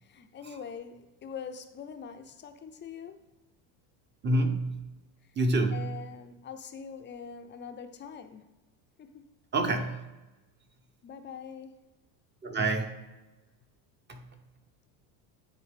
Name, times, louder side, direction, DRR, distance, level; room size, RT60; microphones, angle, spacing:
voice 1, 0.0-3.2 5.7-8.5 9.0-9.3 11.0-11.9, left 7 dB, 25° left, 0.5 m, -43 dB
voice 2, 4.2-4.8 5.4-5.9 9.5-10.0 12.4-13.0 14.1-14.2, right 2 dB, 25° right, 0.8 m, -27 dB
10.0 x 4.1 x 3.4 m
supercardioid pair, 125°, 46 cm